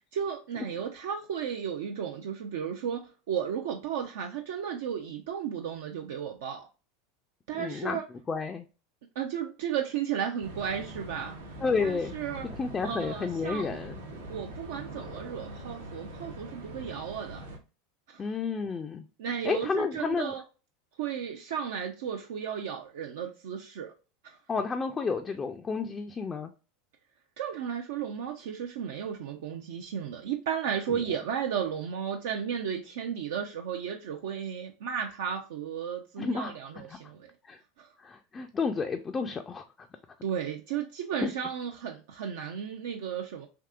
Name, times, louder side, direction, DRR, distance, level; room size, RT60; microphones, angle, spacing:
voice 1, 0.1-6.7 7.5-8.1 9.2-11.4 11.8-12.5 12.8-13.8 14.3-17.5 18.1-18.3 19.2-20.4 21.0-23.9 24.2-24.4 27.4-37.3 37.8-37.9 40.2-43.5, right 8 dB, 70° right, 0.4 m, -34 dB
voice 2, 7.6-8.0 8.3-8.7 11.6-12.1 12.6-13.9 18.2-19.0 19.4-20.3 24.5-26.5 30.9-31.0 36.2-36.5 37.4-37.6 38.0-39.6 41.2-41.3, left 4 dB, 25° left, 0.3 m, -31 dB
sound 1, 10.4-17.6, right 1 dB, 90° right, 0.8 m, -43 dB
3.5 x 2.7 x 2.4 m
hypercardioid pair, 85°, 0 cm